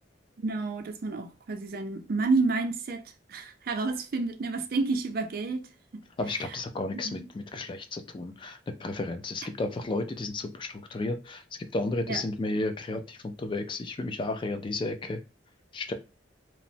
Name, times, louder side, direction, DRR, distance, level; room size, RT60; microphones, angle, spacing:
voice 1, 0.4-3.0 3.3-5.6 5.9-6.0 6.9-7.1 12.1-12.2, right 3 dB, 55° right, 0.4 m, -29 dB
voice 2, 6.2-11.4 11.7-15.2 15.7-15.9, left 2 dB, 25° left, 0.3 m, -33 dB
3.0 x 2.1 x 2.6 m
head